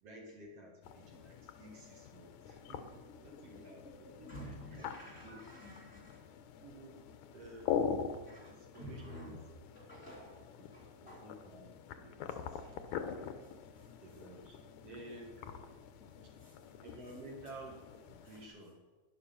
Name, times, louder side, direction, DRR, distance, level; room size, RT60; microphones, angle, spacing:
voice 1, 0.0-4.8 5.2-5.4 6.6-7.0 7.3-8.0 8.4-9.4 11.2-12.7 13.7-15.7 16.8-17.8 18.1-18.8, right 1 dB, 55° right, 0 dB, 2.7 m, -53 dB
sound 1, 0.8-18.5, left 7 dB, 80° left, 2.3 m, -44 dB
voice 2, 3.1-6.2 8.3-9.4 9.7-11.8 12.3-12.7 13.2-13.9 16.0-17.2 18.2-18.4, equal, 25° left, -4 dB, 3.0 m, -53 dB
12.0 x 10.5 x 5.9 m, 1.3 s
omnidirectional pair, 3.5 m